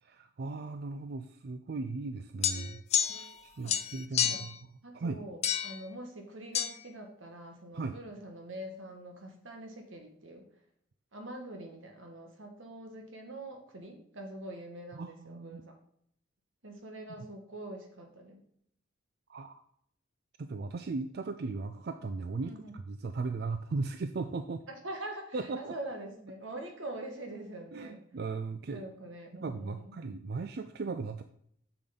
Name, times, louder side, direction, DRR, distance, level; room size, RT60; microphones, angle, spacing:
voice 1, 0.0-2.8 3.1-4.6 4.9-5.2 7.7-7.9 14.9-15.6 19.3-19.6 20.4-24.6 25.3-25.7 27.7-28.8 29.4-31.2, right 3 dB, 50° right, 8 dB, 0.4 m, -37 dB
sound 1, 2.4-3.4 3.7-4.6 5.4-5.8 6.5-6.7, left 9 dB, 35° left, 0.4 m, -30 dB
voice 2, 4.8-10.4 11.1-15.7 16.6-18.4 22.4-22.8 24.7-28.0 28.7-30.0, right 1 dB, 80° right, 3 dB, 1.6 m, -44 dB
7.1 x 6.8 x 3.9 m, 0.68 s
head